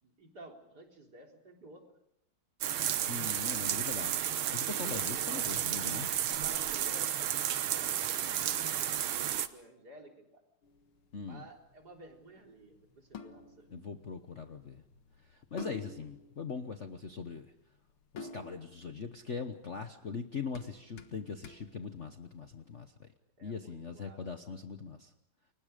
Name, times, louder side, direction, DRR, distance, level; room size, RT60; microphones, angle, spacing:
voice 1, 0.0-1.8 4.8-5.6 6.0-10.4 11.2-13.7 23.4-24.2 24.5-24.6, right 2 dB, 50° right, 2 dB, 4.2 m, -53 dB
sound 1, 2.6-9.5, right 10 dB, 75° right, 1.8 m, -32 dB
voice 2, 3.1-4.2 4.5-6.1 11.1-11.5 13.7-14.8 15.2-17.5 18.1-23.1 23.4-25.1, left 5 dB, 45° left, 7 dB, 1.1 m, -41 dB
sound 2, 10.6-22.7, left 4 dB, 85° left, 2.3 m, -52 dB
29.5 x 24.0 x 5.2 m, 0.78 s
omnidirectional pair, 2.3 m